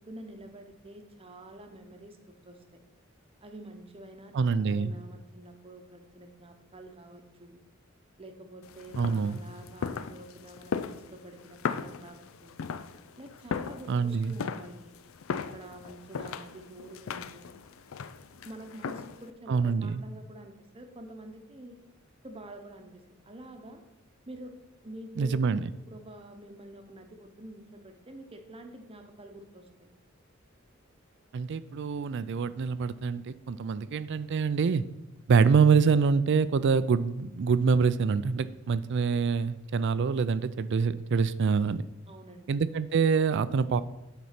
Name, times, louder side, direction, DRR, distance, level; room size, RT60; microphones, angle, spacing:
voice 1, 0.0-2.8 3.4-4.3 4.6-7.6 8.2-12.6 13.2-14.9 15.5-17.6 18.4-21.8 22.2-23.8 24.3-24.5 24.8-25.4 25.9-29.9 42.1-42.6, right 1 dB, 30° right, 5 dB, 0.9 m, -47 dB
voice 2, 4.3-4.9 9.0-9.4 13.9-14.3 19.5-20.0 25.2-25.6 31.3-34.8 35.3-41.8 42.5-43.8, right 5 dB, 60° right, 15 dB, 0.4 m, -25 dB
sound 1, 8.6-19.3, left 6 dB, 70° left, 0.4 m, -38 dB
9.3 x 4.1 x 5.8 m, 0.94 s
head